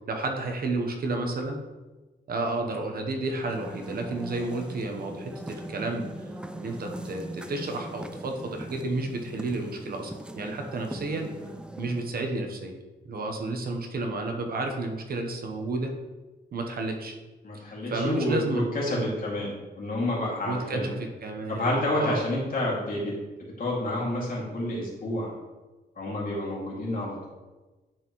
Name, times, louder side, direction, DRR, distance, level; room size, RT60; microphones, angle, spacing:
voice 1, 0.1-1.6 2.3-11.3 11.8-12.8 13.0-15.9 16.5-17.2 17.5-17.6 17.9-18.7 19.0-19.1 20.5-22.2, right 2 dB, 55° right, 3 dB, 0.9 m, -31 dB
sound 1, 3.3-12.2, right 1 dB, 5° right, 0.3 m, -40 dB
voice 2, 17.4-20.9 21.5-23.1 23.6-25.3 26.0-27.3, left 1 dB, 50° left, -4 dB, 2.4 m, -29 dB
10.0 x 4.3 x 3.1 m, 1.2 s
wide cardioid pair, 140°, 18 cm